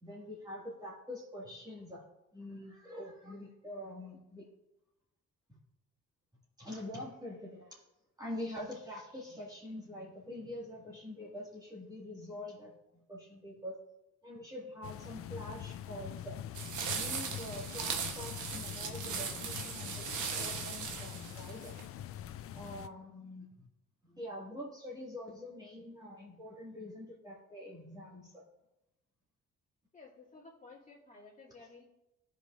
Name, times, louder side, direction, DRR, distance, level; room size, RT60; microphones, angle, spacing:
voice 1, 0.0-2.0 2.3-4.5 5.5-5.6 6.6-7.8 8.2-13.8 14.2-16.4 16.9-21.7 22.5-23.7 24.0-28.4, left 1 dB, 15° right, -6 dB, 2.1 m, -45 dB
sound 1, 14.8-22.9, left 11 dB, 50° left, 0.4 m, -44 dB
sound 2, 16.5-21.8, right 6 dB, 75° right, 1.1 m, -38 dB
voice 2, 29.9-31.8, left 3 dB, 25° left, -6 dB, 2.6 m, -54 dB
15.5 x 5.3 x 2.6 m, 0.94 s
cardioid pair, 90°, 30 cm